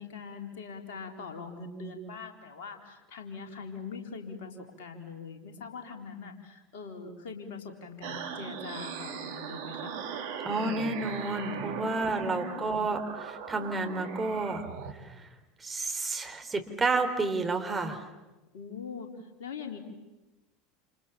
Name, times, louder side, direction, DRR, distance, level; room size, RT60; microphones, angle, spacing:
voice 1, 0.0-9.9 12.1-12.9 18.5-19.1 19.4-19.8, left 5 dB, 65° left, 3 dB, 4.0 m, -42 dB
sound 1, 8.0-14.9, right 7 dB, 65° right, 2.7 m, -39 dB
voice 2, 10.4-14.6 15.0-15.2 15.6-18.0, right 3 dB, 20° right, 6 dB, 4.0 m, -30 dB
29.5 x 28.0 x 7.2 m, 1.1 s
figure-of-eight pair, 75°, 0 cm